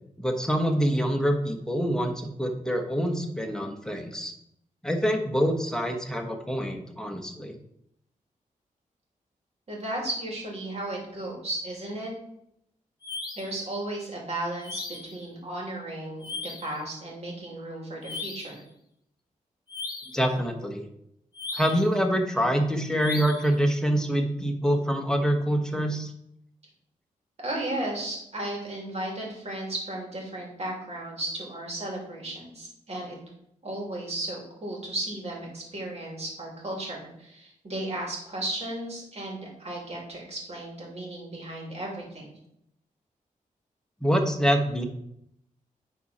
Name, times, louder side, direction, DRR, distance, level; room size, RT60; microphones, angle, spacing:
voice 1, 0.2-4.3 4.8-7.5 20.1-20.8 21.5-26.1 44.0-44.8, equal, 5° left, 3 dB, 1.2 m, -26 dB
voice 2, 9.7-12.1 13.4-18.6 27.4-33.2 33.6-42.4, right 1 dB, 50° right, -2 dB, 3.0 m, -35 dB
sound 1, 13.0-13.6 14.6-15.2 16.2-16.8 18.0-18.6 19.7-20.2 21.3-21.9 23.0-23.6, left 3 dB, 30° left, 1.5 m, -37 dB
9.9 x 4.2 x 4.3 m, 0.75 s
cardioid pair, 85°, 14 cm